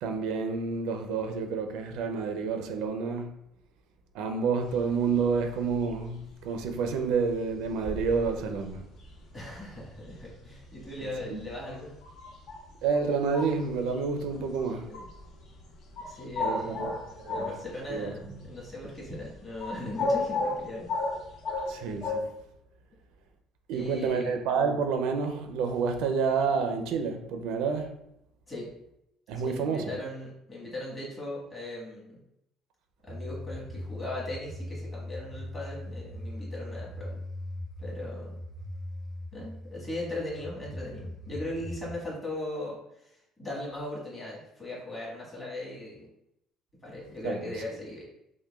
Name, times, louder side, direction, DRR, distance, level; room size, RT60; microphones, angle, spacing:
voice 1, 0.0-3.3 4.1-8.8 11.0-11.4 12.8-14.9 16.4-17.6 17.9-18.1 21.7-22.3 23.7-28.0 29.3-29.9 47.2-47.5, right 5 dB, 80° right, 0.4 m, -29 dB
sound 1, 4.6-18.1 18.4-22.2, left 2 dB, 55° left, 0.7 m, -35 dB
voice 2, 9.3-12.0 14.9-15.1 16.0-16.8 17.3-20.9 23.7-24.3 28.5-28.7 29.4-32.2 33.0-37.2 37.8-38.3 39.3-46.1 46.8-48.0, left 1 dB, 20° left, 1.4 m, -38 dB
sound 2, 33.1-41.9, left 1 dB, ahead, 0.6 m, -40 dB
5.9 x 2.2 x 2.3 m
cardioid pair, 150°, 0 cm